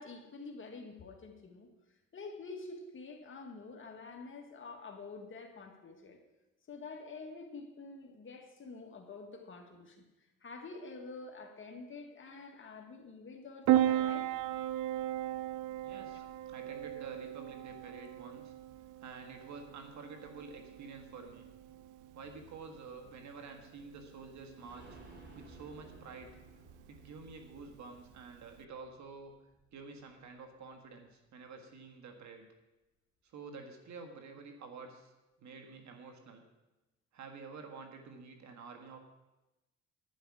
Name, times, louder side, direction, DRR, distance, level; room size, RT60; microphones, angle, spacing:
voice 1, 0.0-1.7 2.1-6.2 6.7-10.0 10.4-14.3 16.1-16.3, left 3 dB, 40° left, 3 dB, 1.9 m, -47 dB
Piano, 13.7-28.6, right 12 dB, 90° right, 0.5 m, -37 dB
voice 2, 15.8-18.5 19.0-21.5 22.1-25.0 25.4-26.4 26.9-29.3 29.7-32.5 33.2-35.1 35.4-36.4 37.1-39.0, right 4 dB, 65° right, 4 dB, 1.7 m, -49 dB
sound 1, 24.6-30.2 30.6-30.7 31.0-31.1, right 1 dB, 35° right, 2.9 m, -58 dB
11.0 x 9.9 x 4.9 m, 1.0 s
cardioid pair, 90°, 30 cm